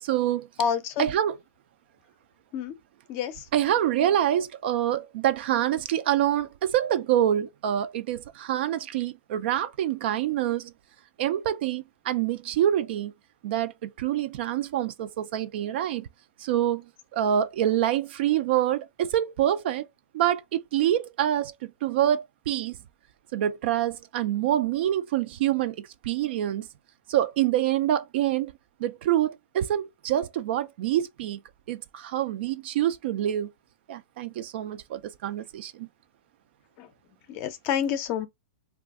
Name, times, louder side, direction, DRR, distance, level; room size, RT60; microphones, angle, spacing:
voice 1, 0.0-0.5 1.0-1.4 3.5-10.7 11.2-13.1 13.4-16.1 16.4-19.9 20.1-22.8 23.3-26.7 27.1-28.5 28.8-31.4 31.7-33.5 33.9-35.9, right 11 dB, 50° right, 0.3 m, -26 dB
voice 2, 0.6-1.1 2.5-2.7 3.1-3.4 36.8-36.9 37.3-38.3, left 8 dB, 30° left, 0.5 m, -28 dB
2.5 x 2.3 x 3.5 m
hypercardioid pair, 155°, 7 cm